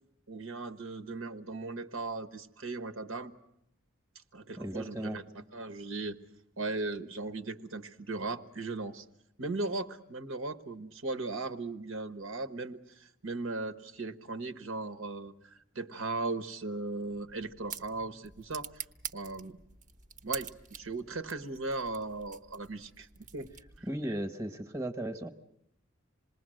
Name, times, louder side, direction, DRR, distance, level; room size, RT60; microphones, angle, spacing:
voice 1, 0.3-3.3 4.3-6.2 6.6-9.0 9.4-18.8 19.1-19.6 20.2-23.5 23.8-24.2, right 3 dB, 85° right, 10 dB, 1.3 m, -38 dB
voice 2, 4.6-5.2 23.8-25.3, right 1 dB, 15° right, 7 dB, 1.1 m, -36 dB
sound 1, 17.1-24.0, right 7 dB, 35° right, 0.9 m, -46 dB
27.0 x 20.5 x 7.7 m, 0.81 s
head